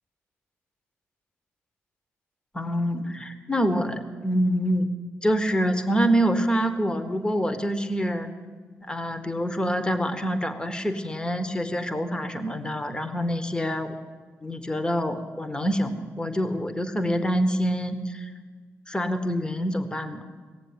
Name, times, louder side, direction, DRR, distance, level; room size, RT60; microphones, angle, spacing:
voice 1, 2.5-4.9 5.2-8.3 8.8-13.9 14.4-18.3 18.9-20.2, equal, 15° left, 8 dB, 1.3 m, -26 dB
18.0 x 7.4 x 9.7 m, 1.5 s
supercardioid pair, 60°, 5 cm